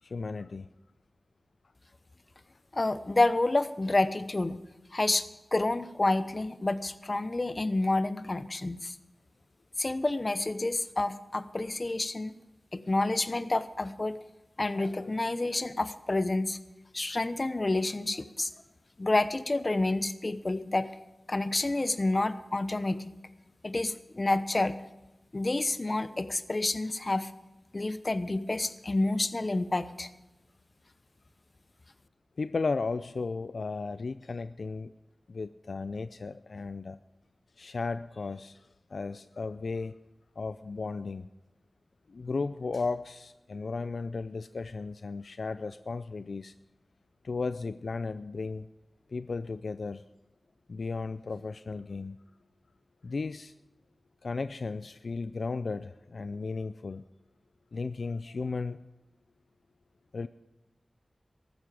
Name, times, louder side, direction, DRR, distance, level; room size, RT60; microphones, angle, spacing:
voice 1, 0.0-0.7 32.4-34.9 35.3-37.0 37.6-40.0 40.4-41.3 42.1-46.5 47.2-48.7 49.1-50.0 50.7-52.2 53.0-53.5 54.2-57.0 57.7-58.8 60.1-60.3, left 4 dB, 70° left, 13 dB, 0.4 m, -35 dB
voice 2, 2.7-4.6 4.9-8.9 9.8-12.3 12.7-14.2 14.6-16.6 16.9-18.5 19.0-20.9 21.3-23.0 23.6-24.7 25.3-27.3 27.7-30.1, left 2 dB, 40° left, 13 dB, 0.9 m, -29 dB
14.5 x 12.5 x 5.2 m, 1.0 s
wide cardioid pair, 70°, 0 cm